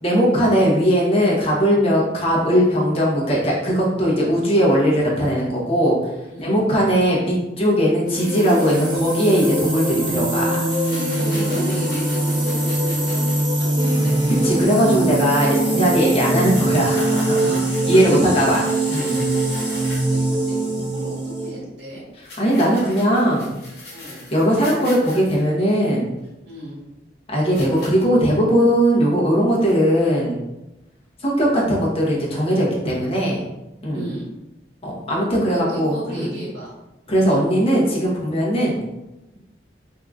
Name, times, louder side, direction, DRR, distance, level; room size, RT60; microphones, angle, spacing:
voice 1, 0.0-6.0 6.4-10.6 14.4-17.5 17.9-19.2 22.4-23.5 24.3-26.1 27.3-30.4 31.2-33.4 33.8-34.0 34.8-36.3 37.1-38.8, equal, 35° left, -4 dB, 0.9 m, -19 dB
sound 1, 8.0-21.5, right 1 dB, 25° right, 1.0 m, -22 dB
sound 2, 10.7-13.5 14.0-14.4 14.7-14.9 15.3-15.4 15.6-20.1 22.2-25.4 26.2-26.3 27.5-28.0, left 2 dB, 60° left, 1.3 m, -40 dB
voice 2, 10.9-13.3 13.6-14.1 17.3-18.5 18.9-22.0 23.9-24.2 26.5-26.8 33.9-34.3 35.5-36.7 37.0-37.2, right 1 dB, 85° right, -5 dB, 1.4 m, -34 dB
3.6 x 2.8 x 2.3 m, 0.99 s
head